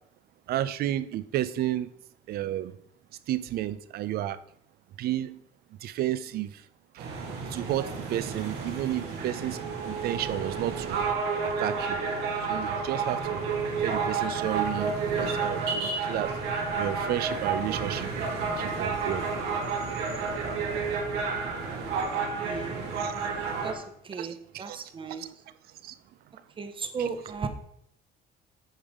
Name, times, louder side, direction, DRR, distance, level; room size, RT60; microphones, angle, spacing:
voice 1, 0.5-1.9 2.3-2.7 3.3-4.4 5.0-5.4 5.8-6.5 7.5-9.6 9.8-11.0 11.6-12.0 12.5-13.4 13.8-16.3 16.8-18.1 18.6-19.3 23.0-23.1 24.2-24.3 24.5-24.8 25.8-25.9 27.0-27.1, right 13 dB, 65° right, 14 dB, 0.5 m, -31 dB
sound 1, 7.0-23.7, right 4 dB, 85° right, 1.9 m, -30 dB
voice 2, 22.4-22.7 23.6-23.7 24.1-24.3 24.6-25.2 26.6-27.5, right 5 dB, 30° right, 8 dB, 0.9 m, -34 dB
8.9 x 5.0 x 3.7 m, 0.72 s
cardioid pair, 110°, 17 cm